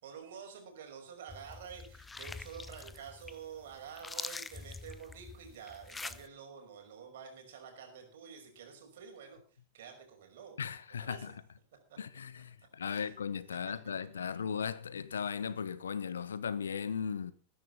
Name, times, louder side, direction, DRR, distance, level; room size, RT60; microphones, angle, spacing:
voice 1, 0.0-9.4 9.7-10.7 11.0-11.3 11.9-12.0 12.3-12.4 12.8-13.1, right 7 dB, 60° right, 5.5 m, -49 dB
sound 1, 1.3-6.3, left 3 dB, 10° left, 0.8 m, -45 dB
voice 2, 10.6-11.3 12.0-17.3, left 6 dB, 70° left, 1.0 m, -37 dB
20.5 x 10.0 x 4.0 m
figure-of-eight pair, 90°, 0 cm